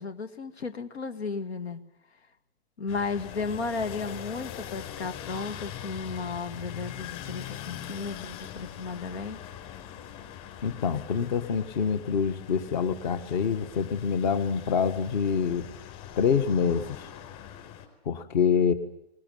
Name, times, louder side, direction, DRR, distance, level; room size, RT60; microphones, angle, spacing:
voice 1, 0.0-1.8 2.8-9.4, left 4 dB, 85° left, 9 dB, 2.1 m, -34 dB
sound 1, 2.9-17.9, left 10 dB, 30° left, 4.6 m, -42 dB
voice 2, 10.6-15.6 16.2-17.1 18.0-18.7, left 6 dB, 45° left, 11 dB, 1.7 m, -26 dB
20.5 x 20.5 x 9.4 m, 0.77 s
hypercardioid pair, 150°, 32 cm